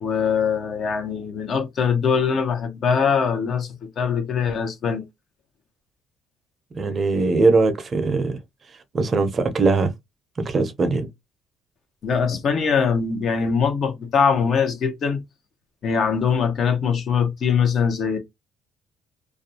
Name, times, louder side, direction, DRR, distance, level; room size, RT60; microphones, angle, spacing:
voice 1, 0.0-3.7 4.0-5.0 12.0-15.2 15.8-18.2, left 6 dB, 55° left, 0.8 m, -22 dB
voice 2, 6.7-8.4 8.9-9.9 10.4-11.1, right 3 dB, 40° right, 0.6 m, -20 dB
2.4 x 2.2 x 2.7 m
supercardioid pair, 75°, 0 cm